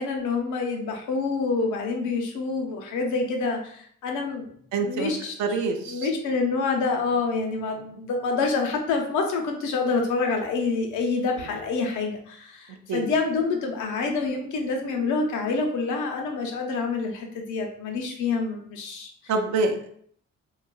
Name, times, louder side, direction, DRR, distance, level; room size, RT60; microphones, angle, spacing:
voice 1, 0.0-4.5 4.8-5.3 5.9-19.1, left 4 dB, 80° left, 2 dB, 0.6 m, -27 dB
voice 2, 4.7-5.1 5.4-6.1 12.9-13.1 19.3-19.9, right 3 dB, 70° right, 4 dB, 0.5 m, -26 dB
2.7 x 2.3 x 2.3 m, 0.62 s
cardioid pair, 90°, 30 cm